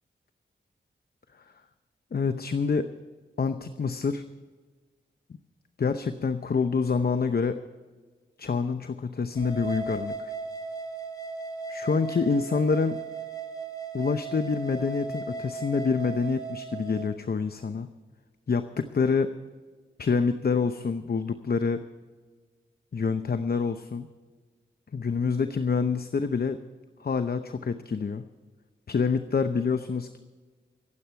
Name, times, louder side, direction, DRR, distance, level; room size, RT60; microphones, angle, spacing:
voice 1, 2.1-2.9 3.4-4.2 5.8-7.6 8.4-10.3 11.7-13.0 13.9-17.9 18.5-19.4 20.0-21.8 22.9-24.1 24.9-26.6 27.0-28.2 28.9-30.2, left 5 dB, 55° left, 9 dB, 0.8 m, -27 dB
sound 1, 9.4-17.0, right 4 dB, 20° left, 2.4 m, -36 dB
24.5 x 8.6 x 4.5 m, 1.4 s
cardioid pair, 55°, 19 cm